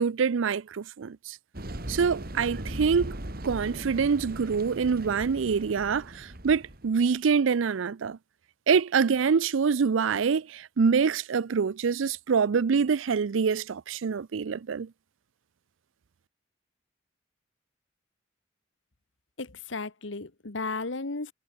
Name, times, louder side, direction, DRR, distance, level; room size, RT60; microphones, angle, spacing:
voice 1, 0.0-1.4 1.9-3.2 3.4-8.2 8.7-14.9, right 6 dB, 90° right, 0.5 m, -25 dB
sound 1, 1.5-7.0, right 1 dB, 50° right, 2.5 m, -39 dB
voice 2, 19.4-21.3, left 3 dB, 75° left, 1.4 m, -34 dB
head